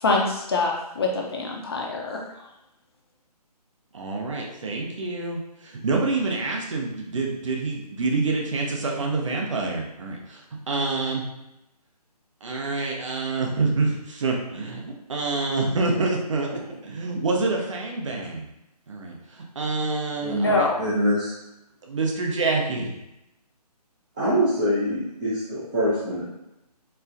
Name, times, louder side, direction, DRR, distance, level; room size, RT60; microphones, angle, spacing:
voice 1, 0.0-2.2 20.3-20.8, left 3 dB, 40° left, -1 dB, 0.6 m, -24 dB
voice 2, 3.9-10.4 10.7-11.2 12.4-16.5 16.8-18.5 18.9-20.7 21.8-22.9, right 3 dB, 50° right, 0 dB, 0.7 m, -27 dB
voice 3, 20.2-21.4 24.2-26.2, equal, 10° right, -12 dB, 0.5 m, -24 dB
4.3 x 2.2 x 2.5 m, 0.88 s
figure-of-eight pair, 150°, 21 cm